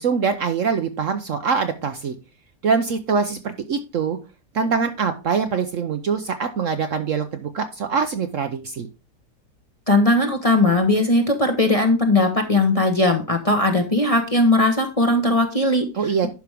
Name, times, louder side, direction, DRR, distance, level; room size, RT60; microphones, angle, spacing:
voice 1, 0.0-2.2 2.6-4.2 4.5-8.9 15.9-16.3, right 5 dB, 60° right, 8 dB, 0.9 m, -23 dB
voice 2, 9.9-15.9, left 2 dB, 25° left, 3 dB, 1.0 m, -18 dB
10.5 x 6.0 x 3.5 m, 0.31 s
omnidirectional pair, 1.8 m